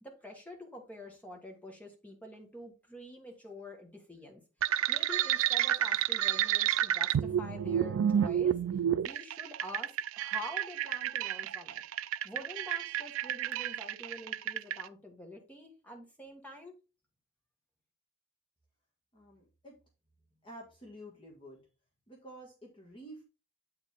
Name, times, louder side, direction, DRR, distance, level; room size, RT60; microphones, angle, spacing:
voice 1, 0.0-8.6 9.0-11.8 12.2-16.7, left 1 dB, 5° left, 1 dB, 1.3 m, -47 dB
sound 1, 4.6-14.8, right 10 dB, 80° right, 0.3 m, -30 dB
voice 2, 19.1-19.7 20.4-21.6 22.1-23.2, right 1 dB, 25° left, -2 dB, 1.4 m, -50 dB
7.8 x 4.6 x 3.5 m, 0.32 s
head